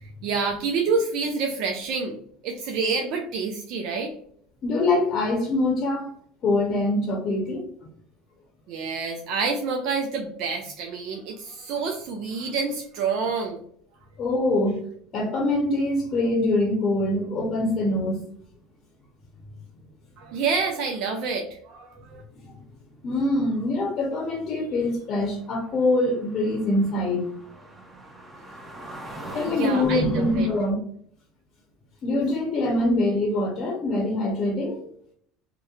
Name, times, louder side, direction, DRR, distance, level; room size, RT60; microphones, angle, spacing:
voice 1, 0.0-2.2 2.4-4.1 8.7-13.6 20.2-22.2 29.4-30.5, right 4 dB, 60° right, 2 dB, 0.4 m, -28 dB
voice 2, 4.6-6.1 6.4-7.7 14.2-14.8 15.1-18.2 22.3-22.6 23.0-27.2 29.3-30.8 32.0-34.8, left 2 dB, 45° left, -1 dB, 0.7 m, -24 dB
sound 1, 24.4-24.5 24.7-30.7, right 1 dB, 20° right, 0.7 m, -42 dB
2.8 x 2.1 x 2.3 m, 0.63 s
hypercardioid pair, 85°, 0 cm